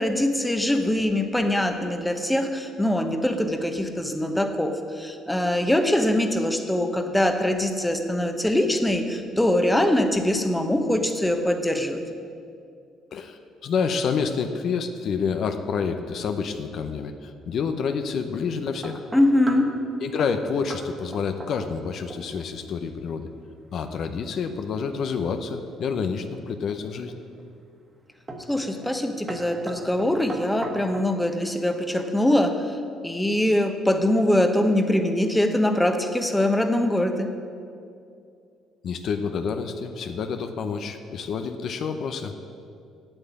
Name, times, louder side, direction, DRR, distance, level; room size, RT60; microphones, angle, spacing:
voice 1, 0.0-12.0 19.1-19.7 28.5-32.8 33.0-37.3, left 1 dB, 5° left, 6 dB, 1.0 m, -23 dB
voice 2, 13.1-19.0 20.0-23.3 23.7-27.1 38.8-42.6, left 5 dB, 60° left, 7 dB, 0.7 m, -28 dB
sound 1, 18.8-19.7 20.2-20.4 20.7-20.9 21.1-21.8 22.1-22.5 25.8-26.5 27.1-27.5 28.3-28.5 28.8-29.0 29.3-31.1, right 2 dB, 25° right, 1.5 m, -38 dB
8.9 x 8.0 x 8.4 m, 2.4 s
cardioid pair, 95°, 0 cm